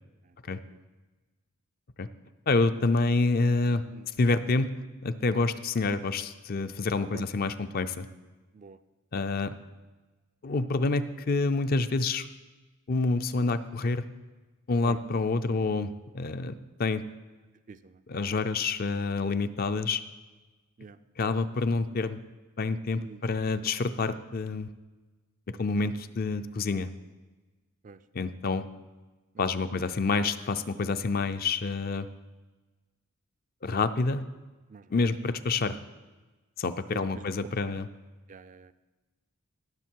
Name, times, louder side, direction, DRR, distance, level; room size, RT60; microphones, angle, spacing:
voice 1, 0.2-0.8 3.9-4.1 7.1-7.2 8.5-8.8 14.8-15.0 17.7-18.0 20.8-21.0 23.0-23.2 27.8-28.0 29.5-29.7 34.7-35.0 36.9-37.8 38.3-38.7, right 4 dB, 35° right, 12 dB, 0.3 m, -47 dB
voice 2, 2.5-3.8 4.2-4.7 5.0-8.1 9.1-9.5 10.4-12.3 12.9-14.0 14.7-16.5 16.8-17.0 18.1-20.0 21.2-22.2 22.6-24.7 25.5-26.9 28.1-28.6 29.4-32.1 33.6-34.2 34.9-35.8 36.6-37.9, left 3 dB, 45° left, 11 dB, 0.5 m, -27 dB
17.5 x 6.5 x 4.6 m, 1.2 s
head